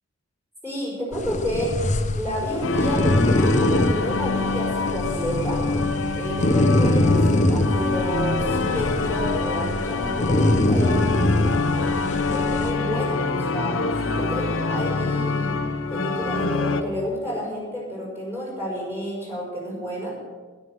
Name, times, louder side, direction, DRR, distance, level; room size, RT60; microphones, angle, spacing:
voice 1, 0.6-1.8 2.2-5.6 6.1-11.1 11.6-13.8 14.2-15.5 15.9-20.2, equal, 10° right, -5 dB, 5.5 m, -30 dB
sound 1, 1.1-12.7, left 1 dB, 35° left, 0.9 m, -23 dB
sound 2, 2.6-16.8, left 3 dB, 70° left, 0.9 m, -25 dB
13.0 x 11.5 x 6.3 m, 1.4 s
head